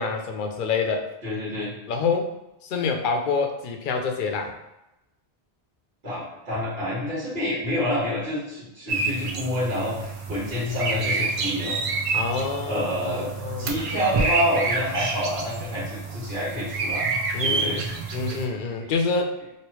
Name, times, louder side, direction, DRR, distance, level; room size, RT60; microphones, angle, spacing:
voice 1, 0.0-1.1 1.9-2.3 2.6-4.5 12.1-13.8 17.3-17.9 18.1-19.6, left 4 dB, 60° left, 4 dB, 0.6 m, -27 dB
voice 2, 1.2-1.7 6.0-11.8 12.6-13.3 13.6-17.1 17.4-18.0 18.8-18.9, left 1 dB, 75° right, -9 dB, 1.7 m, -28 dB
sound 1, 8.9-18.4, right 4 dB, 55° right, 0.3 m, -28 dB
3.0 x 2.9 x 3.0 m, 0.92 s
omnidirectional pair, 1.0 m